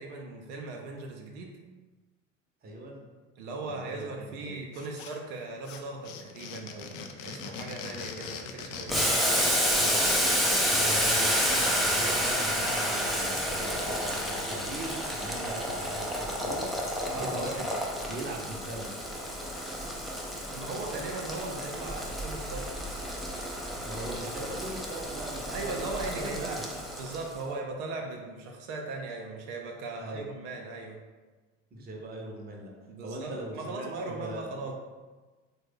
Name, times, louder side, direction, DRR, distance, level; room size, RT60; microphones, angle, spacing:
voice 1, 0.0-1.6 3.4-9.0 17.0-17.3 20.5-22.7 25.5-31.0 32.9-34.7, right 3 dB, 70° right, 1 dB, 0.5 m, -38 dB
voice 2, 2.6-3.1 3.7-4.6 9.7-16.6 17.1-18.9 23.6-25.9 26.2-26.6 30.0-30.2 31.7-32.7 33.0-34.5, right 1 dB, 25° right, -1 dB, 0.7 m, -40 dB
sound 1, 4.7-5.4 5.6-11.6, left 6 dB, 70° left, 0.5 m, -41 dB
Boiling, 8.9-27.3, equal, ahead, 0.4 m, -30 dB
3.1 x 2.2 x 3.5 m, 1.3 s
hypercardioid pair, 70°, 39 cm